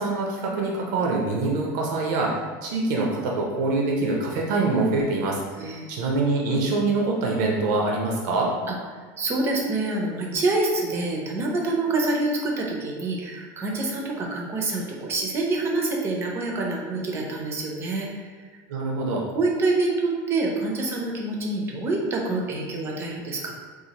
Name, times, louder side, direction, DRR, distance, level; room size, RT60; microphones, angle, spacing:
voice 1, 0.0-5.4 5.9-8.5 18.7-19.2, right 3 dB, 75° right, -1 dB, 0.6 m, -24 dB
voice 2, 5.6-5.9 8.7-8.8 9.2-18.3 19.3-23.5, right 2 dB, 25° right, 0 dB, 0.5 m, -26 dB
4.0 x 2.5 x 2.8 m, 1.5 s
cardioid pair, 160°, 10 cm